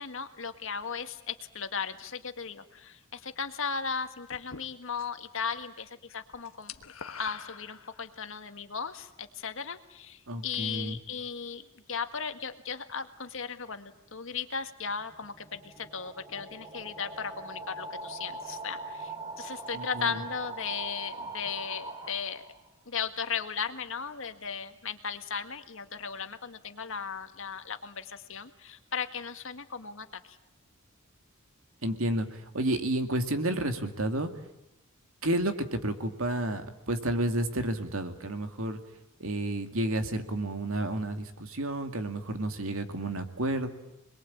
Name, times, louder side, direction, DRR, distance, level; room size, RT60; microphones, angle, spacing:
voice 1, 0.0-6.7 7.2-11.6 11.9-22.5 22.9-30.4, left 6 dB, 65° left, 8 dB, 1.8 m, -36 dB
sound 1, 4.3-5.3 5.6-5.9 6.2-8.3, left 6 dB, 85° left, 1.4 m, -44 dB
voice 2, 10.3-11.0 19.7-20.2 31.8-34.3 35.2-38.8 39.2-43.7, right 1 dB, 75° right, 7 dB, 2.4 m, -31 dB
sound 2, 15.0-22.7, right 3 dB, 20° right, 2.9 m, -42 dB
27.0 x 21.5 x 8.7 m, 0.88 s
head